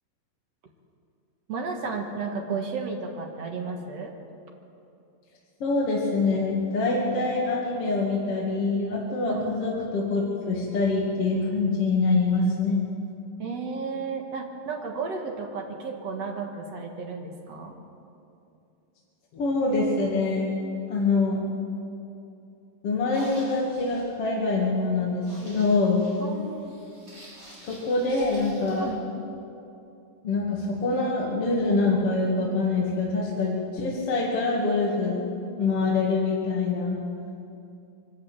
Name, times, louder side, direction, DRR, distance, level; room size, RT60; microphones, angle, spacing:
voice 1, 1.5-4.1 9.4-9.5 13.4-17.8 26.2-26.8 28.8-29.1, right 4 dB, 55° right, 2 dB, 2.3 m, -33 dB
voice 2, 5.6-12.8 19.3-20.5 20.9-21.4 22.8-26.0 27.7-28.9 30.2-35.2 35.6-37.0, left 3 dB, 45° left, -4 dB, 2.8 m, -25 dB
sound 1, 22.9-28.9, equal, 20° right, 5.7 m, -49 dB
24.0 x 12.5 x 8.8 m, 2.7 s
omnidirectional pair, 4.0 m